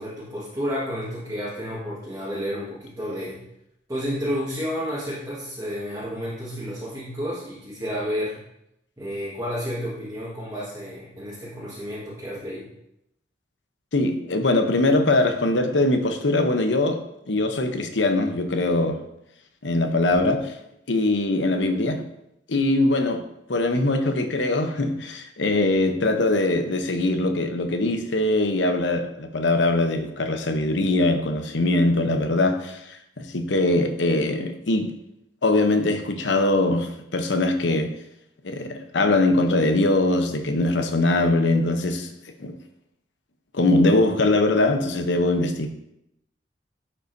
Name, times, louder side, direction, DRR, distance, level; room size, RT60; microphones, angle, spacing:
voice 1, 0.0-3.4 3.9-8.4 9.0-12.7, equal, 20° right, -9 dB, 1.6 m, -31 dB
voice 2, 13.9-17.0 17.3-19.0 19.6-20.4 20.9-22.1 22.5-23.2 23.5-34.9 35.4-37.9 38.4-42.1 42.4-42.5 43.5-45.7, left 2 dB, 85° left, 7 dB, 0.8 m, -22 dB
11.0 x 5.5 x 2.7 m, 0.81 s
head